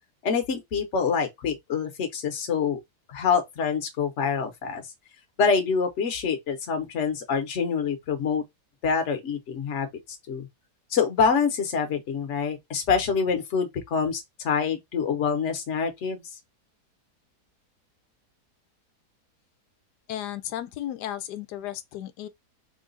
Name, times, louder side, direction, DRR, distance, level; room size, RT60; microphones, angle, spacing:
voice 1, 0.2-2.8 3.1-4.8 5.4-8.4 8.8-9.9 10.3-10.5 10.9-16.2, left 6 dB, 50° left, 1.1 m, -26 dB
voice 2, 20.1-22.3, left 12 dB, 90° left, 1.2 m, -34 dB
3.8 x 2.4 x 3.8 m
omnidirectional pair, 1.7 m